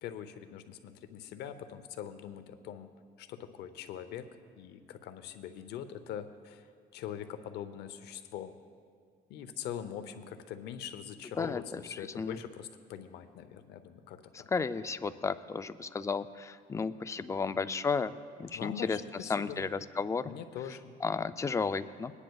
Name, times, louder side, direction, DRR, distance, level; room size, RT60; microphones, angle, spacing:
voice 1, 0.0-2.9 3.2-4.3 4.6-6.7 6.9-8.5 9.3-14.5 18.5-19.6 20.2-20.9, left 9 dB, 80° left, 9 dB, 0.7 m, -42 dB
voice 2, 11.4-12.4 14.3-19.0 19.3-20.3 21.0-22.1, left 5 dB, 20° left, 13 dB, 0.3 m, -33 dB
21.5 x 9.9 x 2.3 m, 2.2 s
cardioid pair, 110°, 17 cm